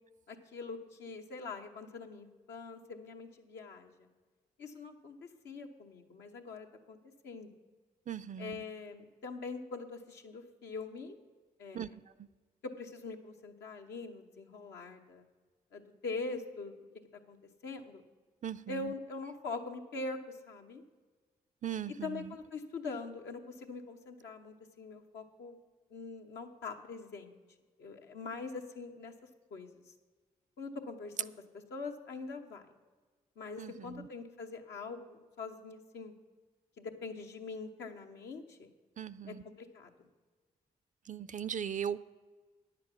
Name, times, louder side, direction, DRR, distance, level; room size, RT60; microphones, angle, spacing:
voice 1, 0.3-3.9 4.6-7.0 7.2-7.5 8.4-11.2 11.6-12.0 12.8-15.2 15.7-16.7 17.3-17.4 17.6-18.0 18.7-20.2 20.5-20.8 22.0-25.6 25.9-27.4 27.8-29.1 29.5-29.9 30.6-31.3 31.7-32.6 33.4-36.1 36.8-38.7 39.3-39.9, left 3 dB, 80° left, 2 dB, 1.0 m, -43 dB
voice 2, 8.1-8.6 11.7-11.9 18.4-18.9 21.6-22.4 33.6-34.1 39.0-39.4 41.1-42.0, right 9 dB, 45° right, 17 dB, 0.4 m, -39 dB
9.8 x 7.5 x 6.0 m, 1.4 s
supercardioid pair, 40°, 18 cm